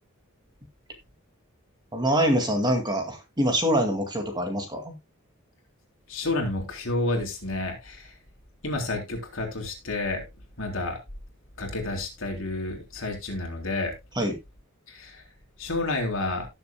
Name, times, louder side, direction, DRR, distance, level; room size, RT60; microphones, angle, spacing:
voice 1, 1.9-4.9 14.2-14.4, equal, 20° right, 4 dB, 2.1 m, -25 dB
voice 2, 6.1-8.1 8.6-10.2 10.6-11.0 11.6-13.9 14.9-15.2 15.6-16.5, left 2 dB, 65° left, 1 dB, 3.6 m, -30 dB
18.0 x 6.9 x 2.2 m, 0.22 s
head